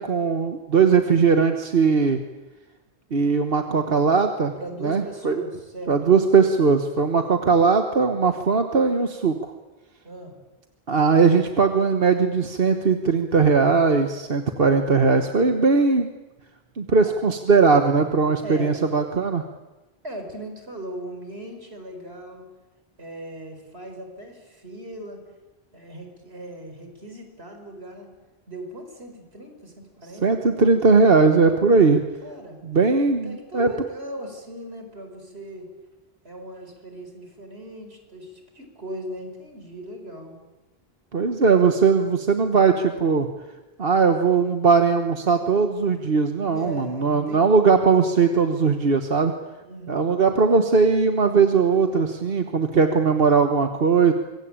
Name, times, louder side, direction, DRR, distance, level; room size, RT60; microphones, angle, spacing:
voice 1, 0.0-2.2 3.1-4.5 4.8-5.4 5.9-9.5 10.9-16.1 16.8-19.4 30.2-32.1 32.6-33.7 41.1-43.3 43.8-49.3 49.9-54.1, right 5 dB, 65° right, 6 dB, 1.5 m, -19 dB
voice 2, 4.6-6.3 10.0-10.3 17.0-17.1 18.4-18.8 20.0-22.5 23.0-25.2 25.7-28.1 28.5-30.3 32.2-32.7 33.2-35.7 36.2-40.4 46.5-47.8 49.6-50.2, right 1 dB, 85° right, 5 dB, 5.2 m, -38 dB
25.5 x 22.5 x 8.8 m, 1.1 s
omnidirectional pair, 1.0 m